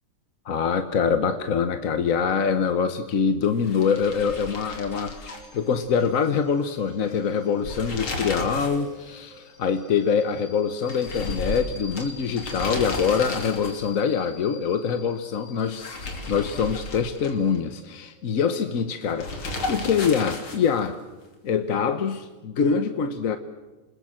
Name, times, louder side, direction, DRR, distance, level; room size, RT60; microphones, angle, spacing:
voice 1, 0.4-5.2 5.5-21.0 21.4-23.4, left 6 dB, 50° left, 9 dB, 1.2 m, -24 dB
sound 1, 3.6-6.1 6.4-6.5 7.5-8.9 9.2-9.3 10.9-14.0 15.6-17.6 19.2-20.9, left 2 dB, 85° left, 3.7 m, -34 dB
sound 2, 3.8-20.1, equal, 40° right, 4.6 m, -48 dB
28.5 x 20.5 x 7.6 m, 1.2 s
omnidirectional pair, 2.2 m